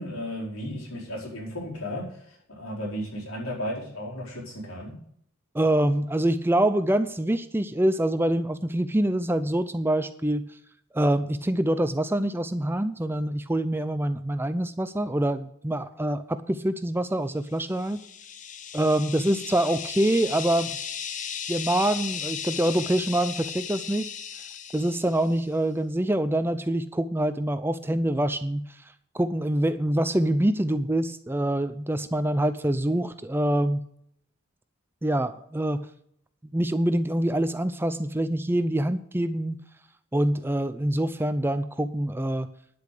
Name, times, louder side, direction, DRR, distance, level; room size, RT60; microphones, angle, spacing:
voice 1, 0.0-5.0, equal, 85° left, -3 dB, 4.8 m, -34 dB
voice 2, 5.5-10.5 10.9-18.0 18.7-20.8 21.5-24.1 24.7-28.8 29.1-33.8 35.0-35.9 36.5-39.6 40.1-42.5, right 1 dB, 10° right, 11 dB, 0.5 m, -25 dB
sound 1, 17.6-25.4, left 8 dB, 35° left, 0.7 m, -36 dB
10.5 x 8.2 x 6.6 m, 0.69 s
head